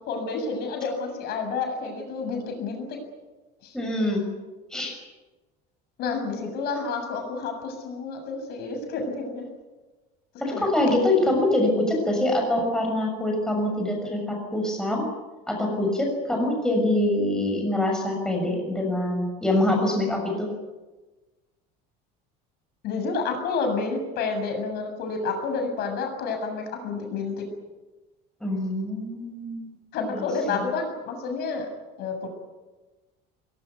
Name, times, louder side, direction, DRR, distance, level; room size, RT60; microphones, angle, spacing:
voice 1, 0.0-3.0 3.6-3.8 6.0-9.4 10.5-10.7 11.2-11.3 22.8-27.5 29.9-31.7 32.0-32.3, left 4 dB, 55° left, 5 dB, 7.3 m, -29 dB
voice 2, 3.7-4.3 4.7-4.9 10.4-15.0 15.5-20.5 28.4-29.8 30.1-30.7, left 1 dB, 5° left, 0 dB, 6.3 m, -25 dB
22.0 x 22.0 x 9.4 m, 1.2 s
cardioid pair, 160°, 20 cm